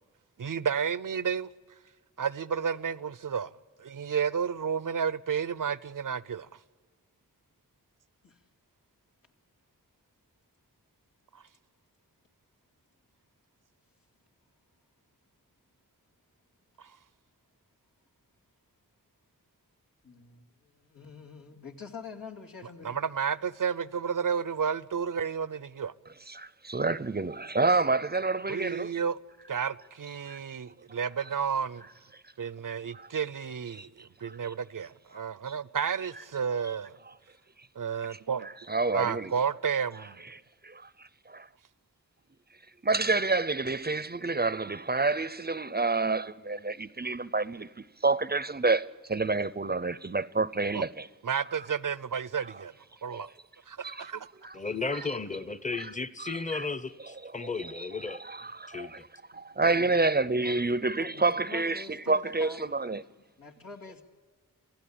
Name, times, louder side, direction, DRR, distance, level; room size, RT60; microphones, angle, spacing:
voice 1, 0.4-1.5 2.2-3.5 3.8-6.5 16.8-16.9 22.8-25.9 28.5-29.2 29.5-31.9 32.4-37.0 37.8-38.5 38.9-40.2 50.7-50.8 51.2-52.7 53.0-53.3 53.7-54.3, right 7 dB, 70° right, 0.6 m, -31 dB
voice 2, 20.0-23.0 59.6-59.9 60.3-60.6 61.0-64.0, left 5 dB, 90° left, 2.6 m, -46 dB
voice 3, 26.3-29.0 30.3-30.4 32.9-33.1 33.7-34.5 35.1-35.3 38.1-39.3 40.3-41.5 42.8-51.1 53.2-53.3 53.8-54.1 54.4-54.6 54.9-55.0 55.8-55.9 56.2-56.7 57.2-59.1 59.3-63.0, right 3 dB, 30° right, 0.6 m, -29 dB
voice 4, 54.5-58.2 58.7-58.9, left 4 dB, 20° left, 0.8 m, -34 dB
28.0 x 15.5 x 8.7 m
wide cardioid pair, 65°, 33 cm